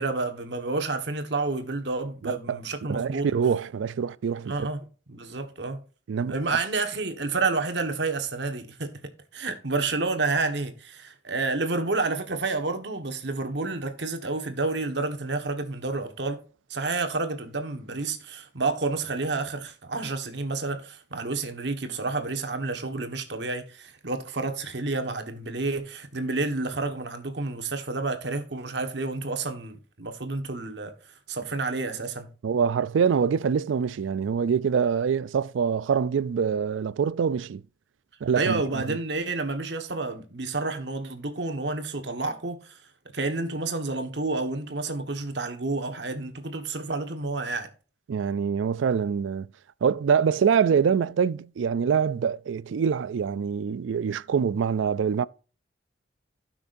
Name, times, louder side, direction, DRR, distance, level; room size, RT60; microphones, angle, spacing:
voice 1, 0.0-3.3 4.4-5.8 6.3-9.0 9.3-16.4 16.7-32.3 38.3-42.8 43.1-47.7, right 3 dB, 65° right, 1.4 m, -30 dB
voice 2, 2.2-2.6 2.9-4.7 6.1-6.4 32.4-37.6 38.2-39.0 48.1-49.5 49.8-55.3, right 6 dB, 85° right, 0.4 m, -25 dB
15.5 x 6.0 x 2.6 m
head